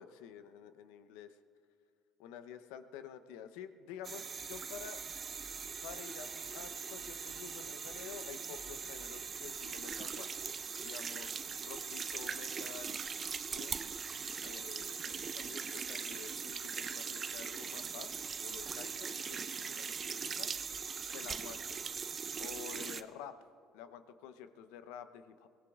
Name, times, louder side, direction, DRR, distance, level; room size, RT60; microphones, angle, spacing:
voice 1, 0.0-1.4 2.2-5.0 5.8-10.3 10.8-13.0 13.5-14.0 14.4-20.5 21.1-21.8 22.4-23.4 23.7-25.5, left 8 dB, 75° left, 10 dB, 0.7 m, -50 dB
sound 1, 4.0-23.0, right 6 dB, 40° right, 0.6 m, -41 dB
22.5 x 17.5 x 2.4 m, 2.3 s
hypercardioid pair, 65°, 0 cm